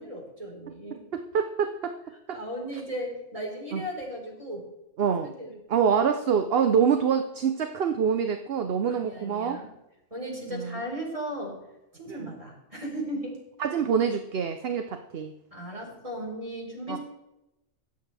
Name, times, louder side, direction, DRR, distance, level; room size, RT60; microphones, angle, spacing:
voice 1, 0.0-1.0 2.3-4.6 5.2-5.6 8.9-9.6 10.1-11.6 11.9-13.4 15.5-17.0, equal, 25° right, -2 dB, 4.6 m, -36 dB
voice 2, 1.1-1.9 2.3-2.4 3.7-3.8 5.0-5.3 5.7-9.6 10.5-10.8 12.1-12.3 13.6-15.3 16.9-17.0, right 7 dB, 55° right, 7 dB, 0.9 m, -26 dB
24.0 x 8.3 x 3.4 m, 0.92 s
omnidirectional pair, 1.3 m